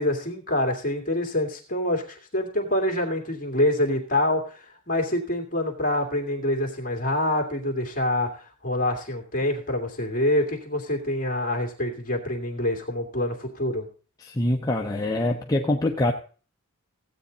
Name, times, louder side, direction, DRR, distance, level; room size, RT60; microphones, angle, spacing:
voice 1, 0.0-13.9, left 1 dB, 40° left, 2 dB, 2.4 m, -26 dB
voice 2, 14.2-16.1, left 1 dB, 15° left, 1 dB, 0.7 m, -24 dB
15.5 x 8.5 x 4.0 m, 0.39 s
head